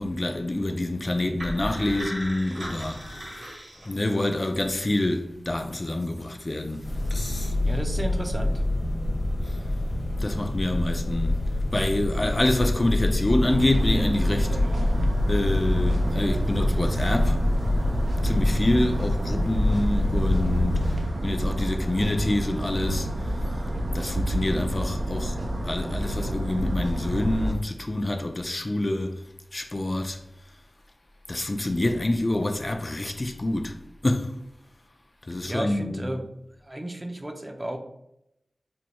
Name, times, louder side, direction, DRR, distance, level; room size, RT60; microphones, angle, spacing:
voice 1, 0.0-3.4 3.9-7.6 9.5-9.6 10.2-11.4 11.7-14.6 15.3-17.4 18.2-23.3 23.9-29.2 29.5-30.2 31.3-34.3 35.3-36.0, left 1 dB, 35° left, 0.3 m, -27 dB
sound 1, 1.4-4.4, equal, 55° right, 1.2 m, -37 dB
sound 2, 6.8-21.0, left 1 dB, 60° left, 0.9 m, -26 dB
voice 2, 7.6-8.6 35.5-36.3 36.6-37.8, right 1 dB, 25° right, 0.5 m, -33 dB
sound 3, 13.4-27.5, right 1 dB, 85° right, 0.5 m, -29 dB
4.3 x 2.2 x 2.8 m
wide cardioid pair, 70°, 0 cm